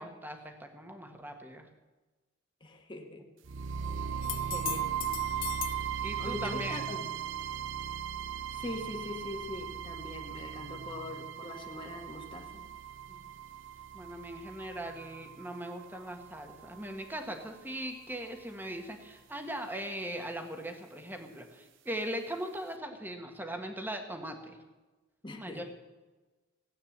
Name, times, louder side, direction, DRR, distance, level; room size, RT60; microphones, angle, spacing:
voice 1, 0.0-1.7 6.0-6.8 13.1-13.2 13.9-24.6 25.4-25.6, right 1 dB, 10° right, 5 dB, 1.5 m, -40 dB
voice 2, 2.6-3.3 4.1-5.0 6.2-7.1 8.5-12.7 25.2-25.6, left 2 dB, 25° left, 2 dB, 1.6 m, -42 dB
sound 1, 3.4-17.4, right 8 dB, 70° right, 0.6 m, -38 dB
sound 2, 4.2-5.9 9.5-9.6, left 18 dB, 75° left, 0.5 m, -39 dB
16.5 x 9.0 x 7.3 m, 1.2 s
head